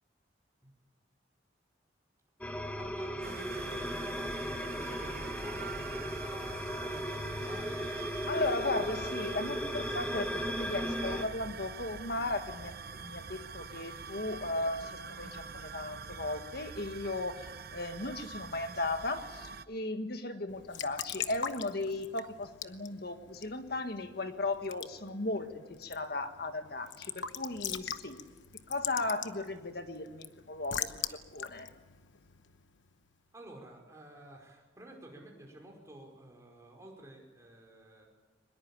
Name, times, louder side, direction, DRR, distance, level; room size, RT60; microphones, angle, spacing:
sound 1, 2.4-11.2, equal, 10° left, 1.5 m, -36 dB
voice 1, 2.8-7.9 33.3-38.1, right 1 dB, 15° right, 0 dB, 5.3 m, -50 dB
sound 2, 3.2-19.6, right 5 dB, 50° right, 0.7 m, -45 dB
voice 2, 8.3-28.2 28.7-31.7, left 2 dB, 55° left, 7 dB, 1.8 m, -36 dB
Raindrop / Drip / Trickle dribble, 20.5-33.0, left 8 dB, 75° left, 1.1 m, -43 dB
23.5 x 21.0 x 8.7 m, 1.3 s
head